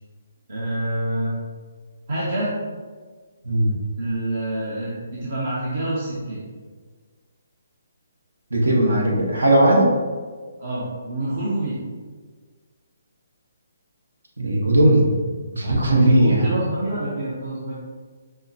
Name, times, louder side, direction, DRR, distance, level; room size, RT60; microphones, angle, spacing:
voice 1, 0.5-1.4 2.1-2.5 4.0-6.4 10.6-11.7 15.9-17.7, right 1 dB, 65° right, -6 dB, 0.8 m, -27 dB
voice 2, 3.4-3.7 8.5-9.9 14.4-15.1 15.5-16.4, right 1 dB, 85° right, -2 dB, 1.0 m, -17 dB
5.6 x 2.1 x 2.7 m, 1.5 s
figure-of-eight pair, 145°, 0 cm